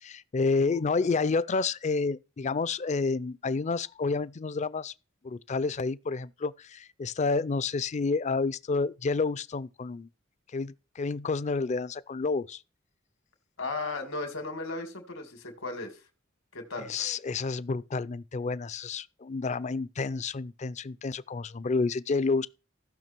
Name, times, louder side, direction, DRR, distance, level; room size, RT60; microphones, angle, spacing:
voice 1, 0.0-4.9 5.2-10.1 10.5-12.6 16.9-22.5, left 4 dB, 35° left, 0.4 m, -29 dB
voice 2, 13.6-15.9 16.5-16.9, left 3 dB, 85° left, 2.6 m, -35 dB
15.5 x 5.8 x 4.5 m
head